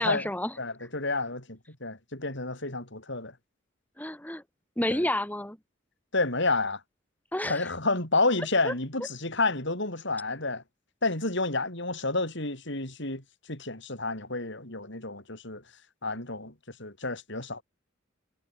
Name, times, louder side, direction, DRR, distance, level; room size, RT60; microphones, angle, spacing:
voice 1, 0.0-0.5 4.0-4.4 4.8-5.6 7.3-7.7 8.6-8.7, left 1 dB, 10° left, 4.0 m, -30 dB
voice 2, 0.6-3.3 4.9-5.0 6.1-6.8 7.4-10.6 11.0-13.2 13.5-15.6 16.0-16.5 16.8-17.6, left 3 dB, 60° left, 7.8 m, -30 dB
head